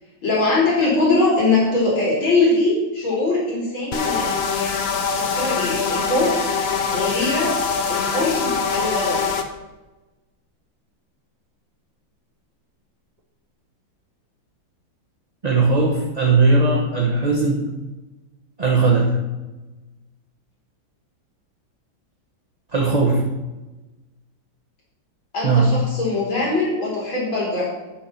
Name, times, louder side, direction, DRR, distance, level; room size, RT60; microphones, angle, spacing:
voice 1, 0.2-4.4 5.2-6.4 6.9-7.5 7.9-9.2 25.3-27.6, left 2 dB, 90° left, -5 dB, 4.2 m, -21 dB
sound 1, 3.9-9.4, left 5 dB, 55° left, 0.7 m, -23 dB
voice 2, 15.4-17.7 18.6-19.2 22.7-23.2 25.4-25.7, right 3 dB, 25° right, -1 dB, 0.9 m, -18 dB
10.5 x 6.5 x 5.7 m, 1.1 s
omnidirectional pair, 2.1 m